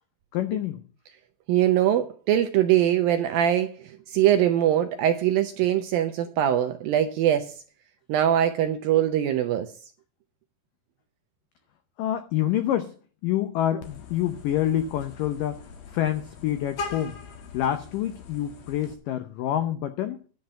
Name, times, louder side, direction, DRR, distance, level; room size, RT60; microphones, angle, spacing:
voice 1, 0.3-0.8 12.0-12.9 13.2-15.6 15.9-17.2 17.5-20.2, left 11 dB, 90° left, 1.9 m, -27 dB
voice 2, 1.5-7.5 8.1-9.7, right 11 dB, 75° right, 2.1 m, -22 dB
Vehicle horn car horn honking, 13.8-18.9, left 4 dB, 60° left, 1.9 m, -41 dB
11.0 x 5.8 x 8.9 m
omnidirectional pair, 5.0 m